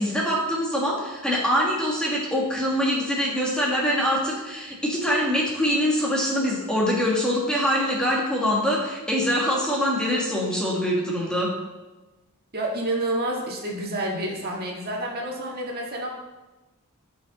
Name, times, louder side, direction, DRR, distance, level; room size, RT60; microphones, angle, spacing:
voice 1, 0.0-11.5, equal, 5° left, -4 dB, 1.7 m, -24 dB
voice 2, 12.5-16.1, right 1 dB, 45° right, -2 dB, 1.8 m, -29 dB
14.0 x 5.6 x 4.1 m, 1.1 s
head